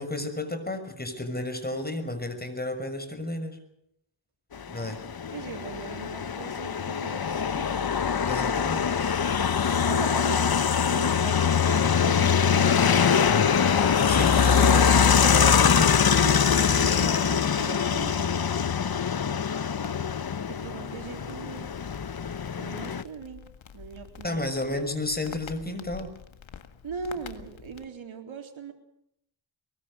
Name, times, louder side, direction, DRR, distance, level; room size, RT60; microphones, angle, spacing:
voice 1, 0.0-3.6 4.7-5.0 8.3-8.9 14.1-15.9 24.2-26.1, left 1 dB, 20° left, 8 dB, 6.3 m, -32 dB
sound 1, 4.6-23.0, left 7 dB, 50° left, 1.2 m, -23 dB
voice 2, 5.3-7.9 9.9-10.4 10.9-13.5 16.0-18.4 20.5-21.7 22.6-23.4 23.7-24.4 26.8-28.7, right 5 dB, 85° right, 5 dB, 3.8 m, -39 dB
Crackle, 12.4-27.8, left 7 dB, 90° left, 1.9 m, -37 dB
23.0 x 23.0 x 6.5 m, 0.76 s
cardioid pair, 65°, 46 cm